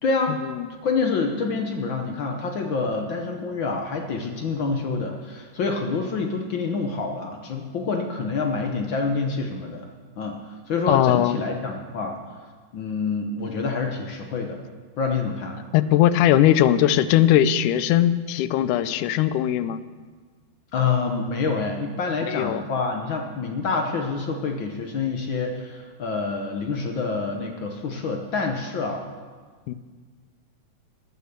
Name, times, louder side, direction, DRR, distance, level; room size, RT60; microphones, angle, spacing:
voice 1, 0.0-0.3 0.8-9.8 10.2-10.4 10.7-12.2 12.7-14.6 15.0-15.6 20.7-29.0, left 4 dB, 70° left, 2 dB, 1.1 m, -27 dB
voice 2, 10.9-11.4 15.7-19.8 22.3-22.7 29.7-29.8, left 12 dB, 90° left, 14 dB, 2.1 m, -19 dB
20.0 x 6.8 x 6.7 m, 1.5 s
omnidirectional pair, 3.5 m